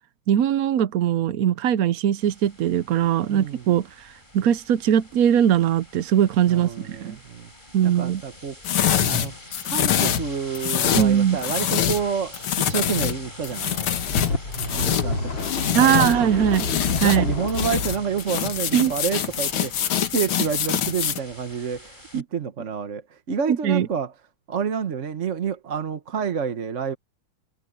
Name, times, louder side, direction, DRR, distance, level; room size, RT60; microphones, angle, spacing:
voice 1, 0.3-7.2 7.7-8.2 11.0-11.4 15.7-16.7 17.0-17.3 18.7-18.9 22.1-22.2 23.5-23.9, right 9 dB, 75° right, 0.8 m, -21 dB
sound 1, 2.2-22.2, left 1 dB, 20° left, 6.8 m, -44 dB
voice 2, 3.3-3.6 6.5-7.5 7.8-8.5 9.1-9.3 9.6-13.8 14.7-16.3 16.9-24.1 24.5-27.0, right 6 dB, 40° right, 1.2 m, -29 dB
sound 2, 8.6-12.1 12.3-16.2 16.5-17.2 17.5-21.2, left 9 dB, 75° left, 2.2 m, -25 dB
sound 3, 13.8-18.0, left 3 dB, 60° left, 3.5 m, -29 dB
omnidirectional pair, 2.3 m